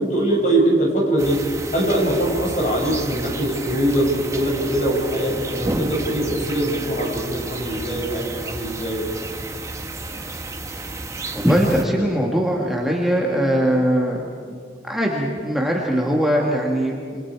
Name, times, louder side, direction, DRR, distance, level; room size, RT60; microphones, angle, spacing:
voice 1, 0.0-1.4 1.7-9.1, right 1 dB, 45° left, -1 dB, 6.3 m, -22 dB
sound 1, 1.2-11.8, right 2 dB, 20° right, 1.3 m, -31 dB
voice 2, 11.3-14.3 14.8-17.2, equal, ahead, -2 dB, 2.0 m, -21 dB
28.0 x 27.0 x 4.8 m, 2.1 s
head